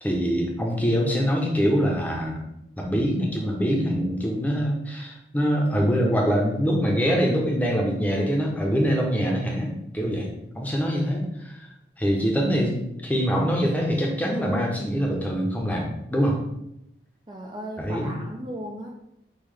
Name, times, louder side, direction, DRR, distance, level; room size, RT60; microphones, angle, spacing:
voice 1, 0.0-2.4 2.8-10.3 10.6-11.7 12.0-16.4 17.8-18.1, equal, 10° left, -1 dB, 0.8 m, -24 dB
voice 2, 17.3-18.9, equal, 25° right, -1 dB, 0.4 m, -36 dB
5.5 x 2.9 x 3.4 m, 0.81 s
head